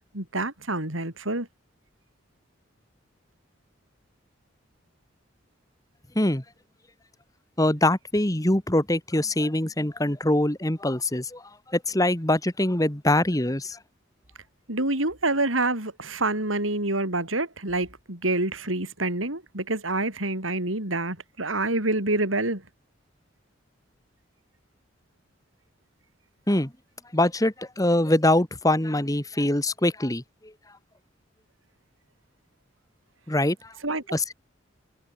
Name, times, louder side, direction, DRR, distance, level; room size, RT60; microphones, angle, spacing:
voice 1, 0.1-1.5 14.7-22.6 33.8-34.3, right 2 dB, 90° right, 7.1 m, -27 dB
voice 2, 7.6-13.8 26.5-26.7 27.1-30.5 33.3-33.7 34.1-34.3, left 1 dB, 15° left, 1.8 m, -24 dB
head